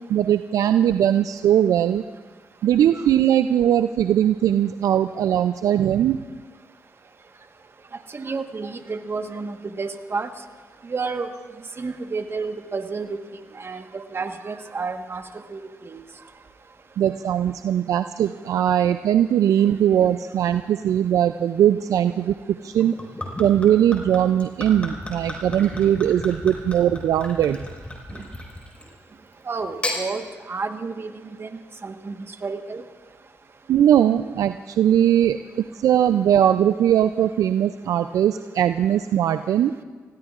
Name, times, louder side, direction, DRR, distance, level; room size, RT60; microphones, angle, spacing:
voice 1, 0.1-2.0 2.6-6.2 17.0-22.9 23.4-27.6 33.7-35.4 35.8-39.7, right 10 dB, 75° right, 10 dB, 0.4 m, -20 dB
voice 2, 8.1-10.3 10.8-11.3 11.8-13.2 13.5-15.2 15.5-16.0 28.1-28.2 29.5-31.5 31.8-32.1 32.4-32.8, right 4 dB, 45° right, 7 dB, 1.3 m, -31 dB
Gurgling / Chink clink / Liquid, 22.8-29.0 29.6-30.0, left 1 dB, 20° left, 4.8 m, -34 dB
28.5 x 17.0 x 2.5 m, 1.4 s
supercardioid pair, 50°, 6 cm